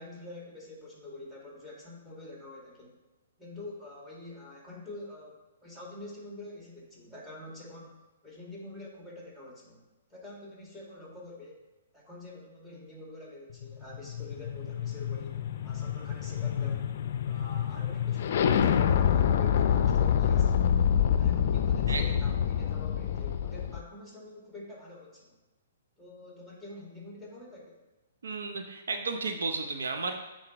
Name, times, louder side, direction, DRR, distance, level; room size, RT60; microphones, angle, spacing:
voice 1, 0.0-3.0 3.4-9.8 10.1-11.6 11.9-16.9 17.3-20.7 21.2-25.4 26.0-27.8, left 2 dB, 5° right, -4 dB, 2.1 m, -46 dB
sound 1, 13.6-23.8, left 8 dB, 55° left, 0.4 m, -27 dB
voice 2, 28.2-30.2, right 4 dB, 80° right, 5 dB, 0.7 m, -33 dB
9.7 x 4.0 x 3.0 m, 1.1 s
hypercardioid pair, 135°, 0 cm